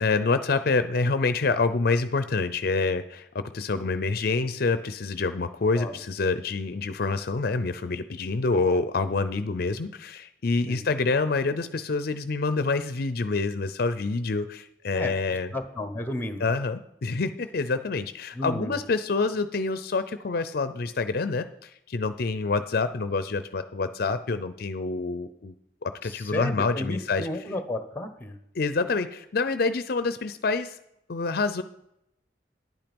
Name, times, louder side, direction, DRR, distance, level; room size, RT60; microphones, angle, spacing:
voice 1, 0.0-15.5 16.4-25.5 25.8-27.3 28.6-30.8 31.1-31.6, left 3 dB, 55° left, 12 dB, 0.5 m, -27 dB
voice 2, 14.9-16.5 18.3-18.8 26.0-28.4, left 1 dB, 10° left, 9 dB, 1.1 m, -33 dB
10.5 x 8.9 x 5.3 m, 0.80 s
head